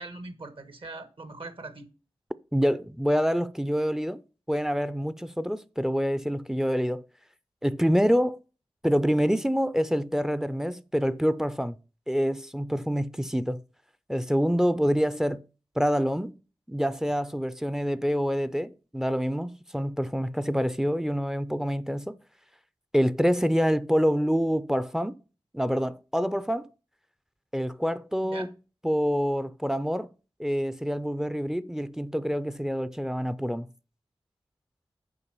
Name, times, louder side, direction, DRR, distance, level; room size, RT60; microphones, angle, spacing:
voice 1, 0.0-1.9 28.2-28.5, right 2 dB, 65° right, 1.3 m, -41 dB
voice 2, 2.5-4.2 4.5-7.0 7.6-8.4 8.8-11.8 12.1-13.6 14.1-15.4 15.8-16.4 16.7-22.2 22.9-25.2 25.5-26.7 27.5-28.5 28.8-30.1 30.4-33.7, equal, 5° right, 0.5 m, -26 dB
7.1 x 5.2 x 6.8 m
wide cardioid pair, 70°, 10 cm